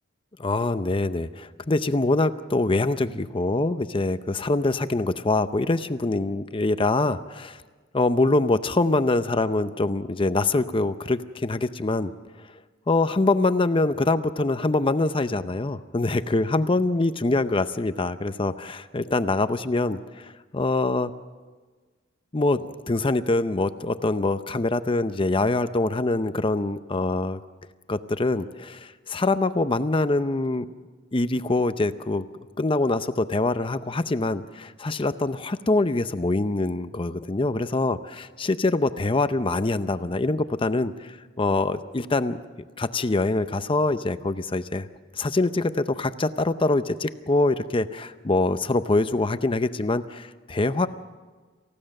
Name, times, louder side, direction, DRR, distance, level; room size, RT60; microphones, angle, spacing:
voice 1, 0.4-7.6 7.9-12.1 12.9-21.1 22.3-27.4 27.9-30.7 31.1-32.3 32.6-42.4 42.8-44.9 45.1-50.9, left 2 dB, 25° left, 11 dB, 0.6 m, -24 dB
28.0 x 15.5 x 6.6 m, 1.4 s
head